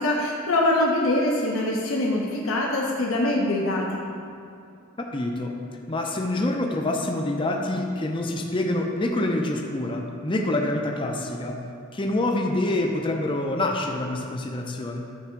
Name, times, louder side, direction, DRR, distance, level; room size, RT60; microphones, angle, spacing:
voice 1, 0.0-4.0, left 1 dB, 80° left, -2 dB, 0.9 m, -24 dB
voice 2, 5.1-5.5 5.9-11.6 11.9-15.1, left 1 dB, 25° left, 1 dB, 0.6 m, -26 dB
9.2 x 3.5 x 5.8 m, 2.5 s
head